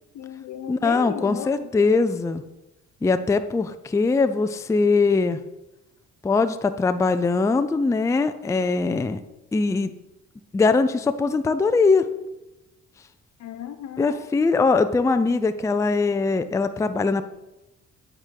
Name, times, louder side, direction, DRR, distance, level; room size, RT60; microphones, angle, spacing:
voice 1, 0.1-2.1 13.4-14.3, left 9 dB, 70° left, 9 dB, 0.9 m, -35 dB
voice 2, 0.7-2.4 3.0-5.4 6.2-9.2 9.5-9.9 10.5-12.1 14.0-17.2, left 4 dB, 10° left, 10 dB, 0.4 m, -21 dB
9.0 x 3.7 x 6.4 m, 0.99 s
cardioid pair, 90°, 30 cm